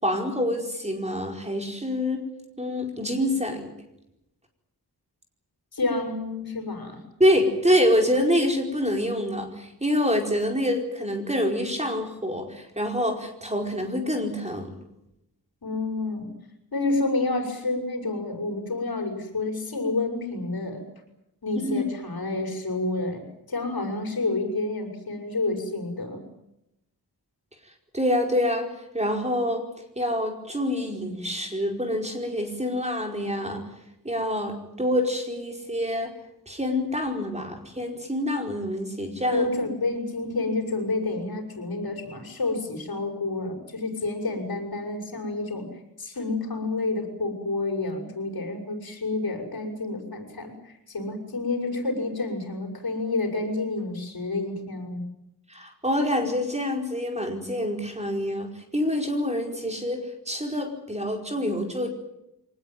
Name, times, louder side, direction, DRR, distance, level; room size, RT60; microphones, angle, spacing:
voice 1, 0.0-2.3 2.6-3.7 7.2-14.8 21.6-21.8 27.9-29.6 30.0-33.6 34.0-36.1 36.5-39.5 55.5-61.9, equal, 15° right, 3 dB, 4.8 m, -26 dB
voice 2, 5.7-7.0 15.6-16.3 16.7-20.8 21.4-23.2 23.5-26.2 39.3-45.7 46.0-55.0, left 2 dB, 65° left, 3 dB, 6.3 m, -29 dB
24.5 x 19.5 x 9.2 m, 0.84 s
wide cardioid pair, 110°, 39 cm